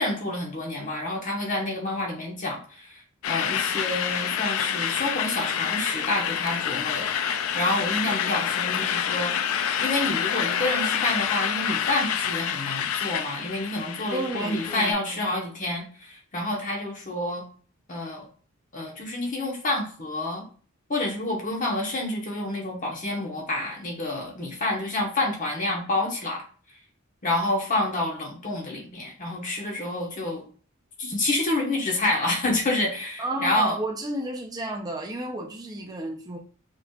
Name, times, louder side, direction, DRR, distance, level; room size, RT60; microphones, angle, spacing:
voice 1, 0.0-7.1 7.5-9.3 9.8-17.4 17.9-18.2 18.7-20.4 20.9-26.4 27.2-30.4 31.0-33.8, left 2 dB, 40° left, -1 dB, 1.2 m, -28 dB
sound 1, 3.2-14.9, left 8 dB, 75° left, 0.4 m, -27 dB
voice 2, 14.1-15.3 33.2-36.4, right 2 dB, 20° right, 1 dB, 0.6 m, -31 dB
5.1 x 3.2 x 2.4 m, 0.42 s
head